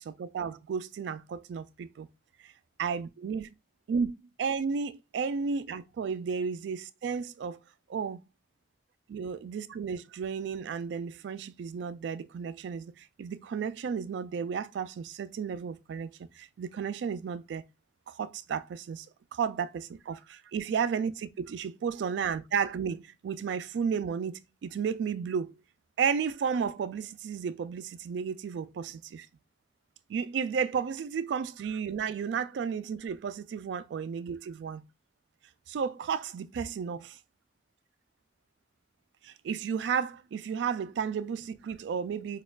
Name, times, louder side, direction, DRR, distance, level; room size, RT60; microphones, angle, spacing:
voice 1, 0.0-2.1 2.8-3.4 3.9-7.6 7.9-8.2 9.1-17.6 18.1-19.1 19.3-25.6 26.0-29.3 30.1-34.8 35.7-37.2 39.2-42.4, right 6 dB, 85° right, 0.3 m, -33 dB
4.2 x 2.3 x 2.3 m
head